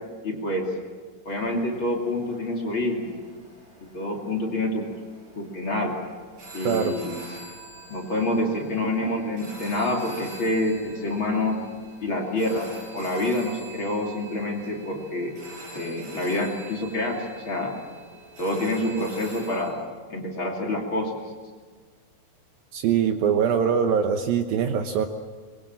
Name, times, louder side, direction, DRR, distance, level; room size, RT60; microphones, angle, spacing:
voice 1, 0.2-0.6 1.2-3.1 3.9-4.8 5.3-5.9 6.5-7.1 7.9-11.7 12.0-15.3 15.7-17.7 18.4-19.7 20.1-21.2, left 1 dB, 30° left, 0 dB, 3.0 m, -27 dB
sound 1, 1.3-19.7, right 2 dB, 50° right, 7.4 m, -45 dB
voice 2, 22.7-25.1, right 7 dB, 70° right, 6 dB, 2.5 m, -23 dB
23.5 x 23.0 x 7.5 m, 1.6 s
omnidirectional pair, 4.9 m